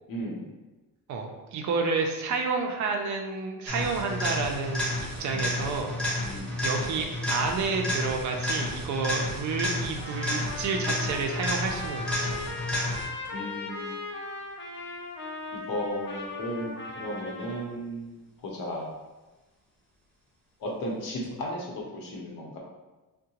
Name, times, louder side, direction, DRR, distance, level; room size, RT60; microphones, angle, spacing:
voice 1, 0.1-0.5 5.3-5.5 6.2-6.5 13.3-14.0 15.5-18.9 20.6-22.6, equal, 65° left, -2 dB, 0.9 m, -35 dB
voice 2, 1.1-5.9 6.6-12.4, right 4 dB, 50° right, 2 dB, 0.4 m, -30 dB
sound 1, 3.7-13.3 21.2-21.3, left 1 dB, ahead, 0.8 m, -31 dB
Trumpet, 10.0-17.7, left 3 dB, 35° left, 0.4 m, -38 dB
3.7 x 2.2 x 2.8 m, 1.1 s
cardioid pair, 155°, 37 cm